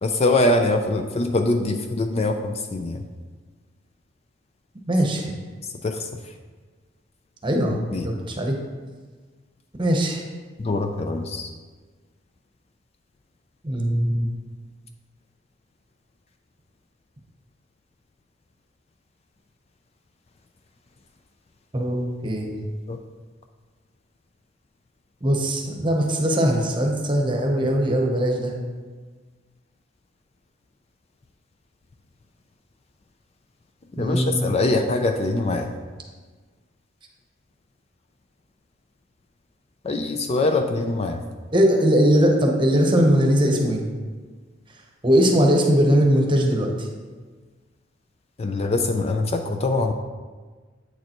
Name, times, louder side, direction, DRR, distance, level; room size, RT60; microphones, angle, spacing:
voice 1, 0.0-3.0 5.8-6.2 7.9-8.1 10.6-11.5 22.9-23.0 33.9-35.7 39.8-41.2 48.4-49.9, left 2 dB, 30° left, 5 dB, 0.4 m, -23 dB
voice 2, 4.9-5.3 7.4-8.6 9.8-10.2 13.6-14.3 21.7-22.5 25.2-28.5 34.0-34.5 41.5-43.8 45.0-46.9, equal, 25° right, 1 dB, 0.9 m, -20 dB
8.3 x 6.6 x 3.0 m, 1.4 s
head